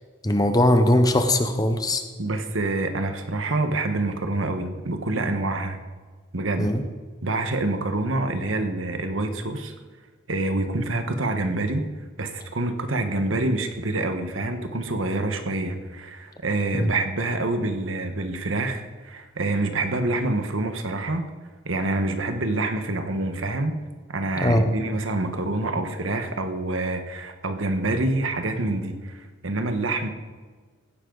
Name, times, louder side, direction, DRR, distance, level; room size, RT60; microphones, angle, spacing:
voice 1, 0.2-2.0 6.6-6.8 16.8-16.9 24.4-24.7, left 1 dB, 20° left, 7 dB, 0.8 m, -20 dB
voice 2, 2.2-5.8 6.3-6.7 7.2-9.7 10.3-11.8 12.2-21.3 21.6-23.7 24.1-30.1, right 2 dB, 85° right, 7 dB, 1.3 m, -26 dB
16.0 x 10.0 x 4.0 m, 1.4 s
head